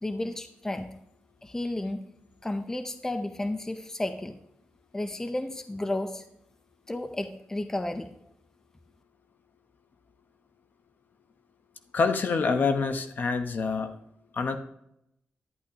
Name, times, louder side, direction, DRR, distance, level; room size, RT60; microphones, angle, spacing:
voice 1, 0.0-0.9 1.4-2.0 2.4-4.4 4.9-6.2 6.9-8.1, left 1 dB, 15° left, 8 dB, 0.5 m, -32 dB
voice 2, 11.9-13.9 14.4-14.6, left 4 dB, 55° left, 8 dB, 0.8 m, -26 dB
11.0 x 10.5 x 2.8 m, 0.77 s
wide cardioid pair, 135°, 4 cm